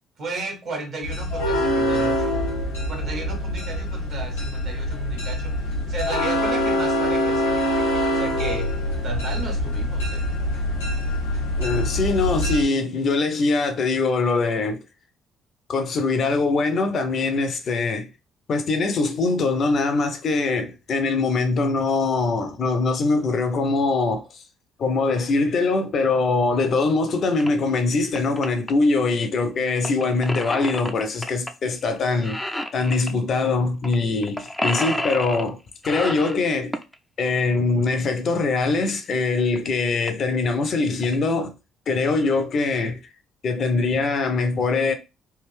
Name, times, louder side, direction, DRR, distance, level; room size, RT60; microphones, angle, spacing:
voice 1, 0.2-2.4 2.9-7.8 8.1-8.7 9.0-10.3 26.4-26.7, right 3 dB, 55° right, 1.3 m, -34 dB
sound 1, 1.0-12.6, left 1 dB, 85° left, 1.3 m, -24 dB
voice 2, 11.6-14.8 15.7-18.1 18.5-24.4 24.8-35.6 35.8-36.7 37.2-41.5 41.9-43.0 43.4-44.9, left 3 dB, 50° left, 0.7 m, -22 dB
sound 2, 27.4-27.5 27.9-28.7 29.8-31.5 31.8-32.0 32.2-33.1 33.8-34.0 34.2-35.5 35.8-37.0 38.6-38.7 39.3-39.4 39.6-39.7 40.0-40.3 40.8-41.1, left 1 dB, 5° left, 0.5 m, -29 dB
3.5 x 2.5 x 3.3 m
figure-of-eight pair, 45°, 0 cm